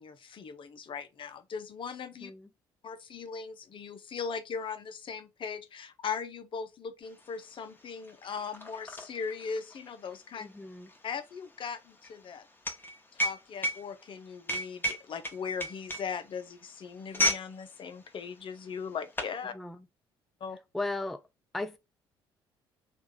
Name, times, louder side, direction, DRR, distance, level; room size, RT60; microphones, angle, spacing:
voice 1, 0.0-2.3 2.8-10.5 11.0-12.4 13.1-19.5 20.4-20.6, left 6 dB, 45° left, 0.6 m, -39 dB
sound 1, 7.2-7.3 7.5-17.5 17.8-18.1 18.7-19.4, left 1 dB, 15° left, 1.0 m, -34 dB
voice 2, 10.4-10.9 19.5-19.9 20.7-21.2 21.5-21.8, left 2 dB, ahead, 0.3 m, -36 dB
3.2 x 2.4 x 3.5 m
hypercardioid pair, 50°, 12 cm